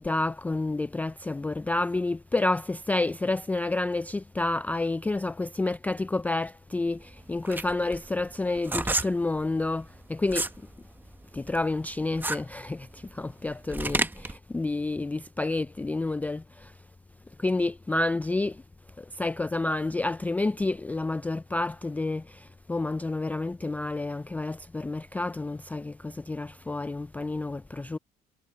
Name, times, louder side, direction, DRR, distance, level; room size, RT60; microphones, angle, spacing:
voice 1, 0.0-10.5 11.3-16.8 17.4-18.6 19.0-28.0, left 2 dB, 10° left, 0.3 m, -29 dB
sound 1, 7.0-10.6 11.0-14.4, right 2 dB, 10° right, 0.9 m, -31 dB
cardioid pair, 110°, 17 cm